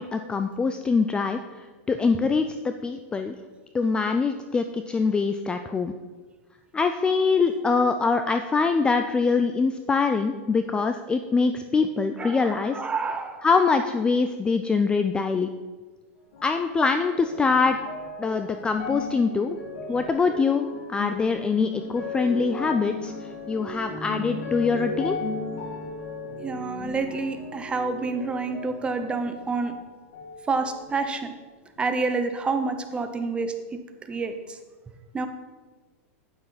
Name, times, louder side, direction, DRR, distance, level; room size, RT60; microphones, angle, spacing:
voice 1, 0.0-3.4 3.7-5.9 6.7-12.8 13.4-15.5 16.4-17.8 18.2-19.6 19.9-23.1 23.5-25.2, left 4 dB, 10° left, 8 dB, 0.4 m, -24 dB
voice 2, 12.2-13.4 26.4-29.7 30.5-31.3 31.8-33.8 34.1-34.6 35.1-35.3, right 4 dB, 15° right, 7 dB, 0.8 m, -28 dB
sound 1, 16.3-29.8 30.1-31.1 31.8-31.9, left 3 dB, 80° left, 2.4 m, -36 dB
9.4 x 8.7 x 4.1 m, 1.4 s
supercardioid pair, 135°, 7 cm